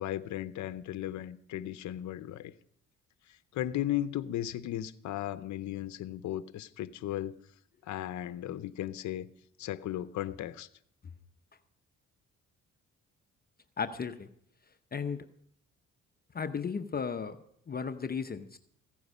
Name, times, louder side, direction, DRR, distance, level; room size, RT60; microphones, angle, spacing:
voice 1, 0.0-2.5 3.3-7.4 7.8-9.3 9.6-10.7, left 12 dB, 70° left, 12 dB, 0.7 m, -36 dB
voice 2, 13.8-14.3 14.9-15.3 16.3-17.4 17.7-18.6, left 6 dB, 30° left, 8 dB, 0.7 m, -35 dB
15.5 x 9.5 x 5.4 m, 0.68 s
cardioid pair, 90°, 30 cm